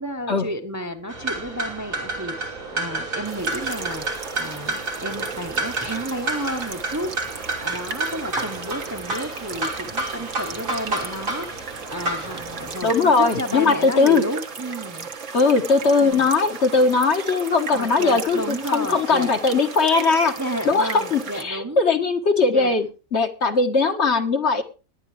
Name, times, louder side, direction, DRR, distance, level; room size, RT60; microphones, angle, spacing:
voice 1, 0.0-15.1 16.0-16.2 17.7-19.3 20.4-21.8 22.5-22.7, equal, 15° right, 5 dB, 1.0 m, -31 dB
sound 1, 1.1-12.7, right 2 dB, 85° right, 3.6 m, -30 dB
sound 2, 3.2-21.4, right 5 dB, 65° right, 1.7 m, -36 dB
voice 2, 12.8-14.2 15.3-20.3 20.6-24.6, left 4 dB, 55° left, 5 dB, 1.7 m, -19 dB
18.5 x 10.5 x 3.3 m, 0.33 s
omnidirectional pair, 1.4 m